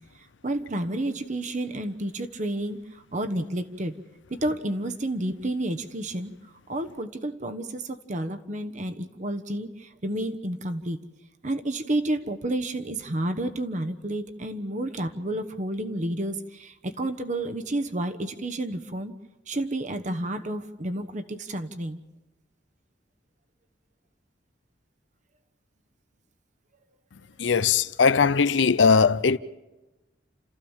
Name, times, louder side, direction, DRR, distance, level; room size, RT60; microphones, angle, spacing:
voice 1, 0.4-3.9 4.3-6.3 6.7-11.0 11.4-19.1 19.5-22.0, right 1 dB, 40° right, 1.2 m, -30 dB
voice 2, 27.4-29.4, left 5 dB, 90° left, 0.6 m, -20 dB
29.5 x 14.5 x 7.3 m
head